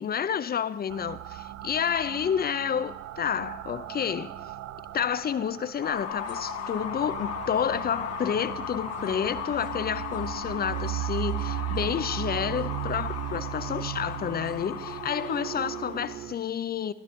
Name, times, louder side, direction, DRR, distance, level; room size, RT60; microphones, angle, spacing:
voice 1, 0.0-4.3 4.9-16.9, left 8 dB, 30° left, 0.5 m, -30 dB
sound 1, 0.9-16.3, right 14 dB, 45° right, 0.5 m, -37 dB
sound 2, 5.8-16.2, left 7 dB, 45° left, 1.0 m, -37 dB
13.5 x 12.5 x 3.2 m
figure-of-eight pair, 45°, 33 cm